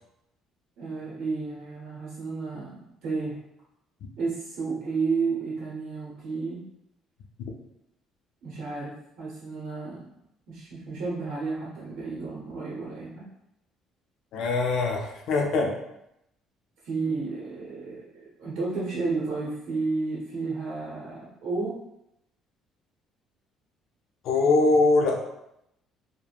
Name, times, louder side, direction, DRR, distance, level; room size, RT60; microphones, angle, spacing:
voice 1, 0.8-3.4 4.2-6.6 8.4-10.1 10.5-13.3 16.8-21.8, right 4 dB, 70° right, -6 dB, 0.7 m, -32 dB
voice 2, 14.3-15.7 24.2-25.3, left 3 dB, 70° left, 1 dB, 0.5 m, -22 dB
3.3 x 2.1 x 2.3 m, 0.83 s
cardioid pair, 105°, 0 cm